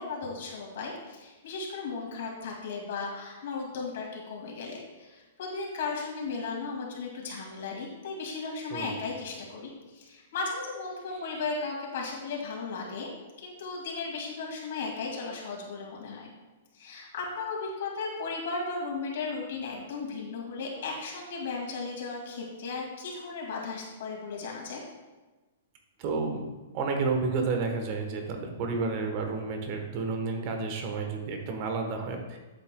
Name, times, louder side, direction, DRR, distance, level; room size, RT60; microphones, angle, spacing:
voice 1, 0.0-13.1 13.4-16.3 16.7-24.8, left 4 dB, 60° left, -2 dB, 2.2 m, -36 dB
voice 2, 8.7-9.0 26.0-26.4 26.7-32.4, right 4 dB, 35° right, 4 dB, 1.1 m, -31 dB
10.5 x 7.6 x 2.3 m, 1.2 s
hypercardioid pair, 165°, 0 cm